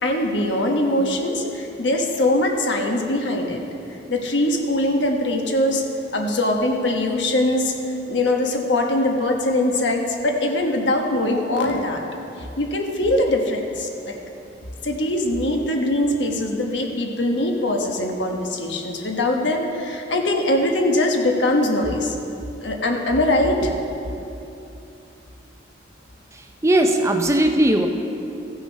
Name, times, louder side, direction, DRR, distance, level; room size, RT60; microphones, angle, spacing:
voice 1, 0.0-3.6 4.1-5.8 6.1-7.7 8.1-12.0 12.6-14.2 14.8-22.2 22.6-23.7, left 1 dB, 75° left, 2 dB, 1.2 m, -22 dB
voice 2, 26.6-27.9, right 1 dB, 15° right, 5 dB, 0.5 m, -18 dB
15.0 x 6.3 x 5.4 m, 2.9 s
head